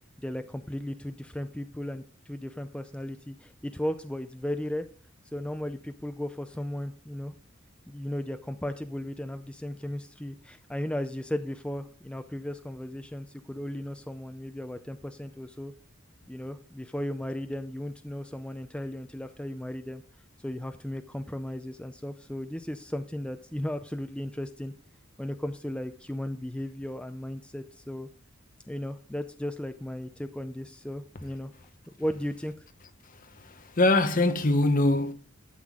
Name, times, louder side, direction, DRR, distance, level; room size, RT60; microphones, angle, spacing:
voice 1, 0.2-4.9 5.3-7.3 7.9-15.7 16.3-20.0 20.4-24.7 25.2-28.1 28.7-31.5 31.9-32.7, left 1 dB, 5° left, 0.5 m, -35 dB
voice 2, 33.4-35.1, left 2 dB, 40° left, 1.0 m, -23 dB
12.0 x 7.8 x 3.7 m
head